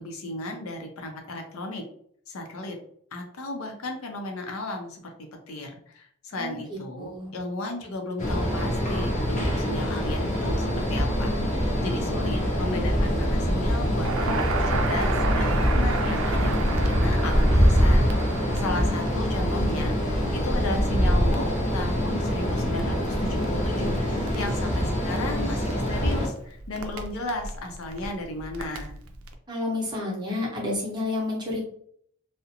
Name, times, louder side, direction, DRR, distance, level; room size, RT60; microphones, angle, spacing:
voice 1, 0.0-1.8 2.3-2.8 3.1-5.0 5.5-18.1 18.4-24.0 24.3-29.0, left 2 dB, 85° left, 3 dB, 0.6 m, -34 dB
voice 2, 6.3-7.3 29.5-31.6, left 2 dB, 20° right, -3 dB, 0.7 m, -30 dB
sound 1, 8.2-26.3, equal, 35° left, 0.5 m, -24 dB
Crackle, 13.9-29.3, right 3 dB, 80° right, 0.4 m, -35 dB
2.4 x 2.0 x 2.8 m, 0.63 s
head